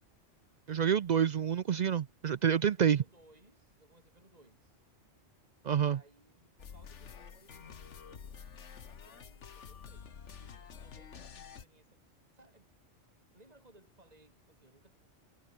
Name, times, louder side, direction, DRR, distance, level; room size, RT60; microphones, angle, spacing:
voice 1, 0.7-3.0 5.6-6.0, right 8 dB, 60° right, 0.4 m, -28 dB
voice 2, 2.4-4.8 5.8-8.4 8.9-12.0 12.3-12.8 13.3-14.9, right 1 dB, 30° right, 4.6 m, -63 dB
sound 1, 6.6-11.6, left 7 dB, 70° left, 1.6 m, -49 dB
omnidirectional pair, 1.3 m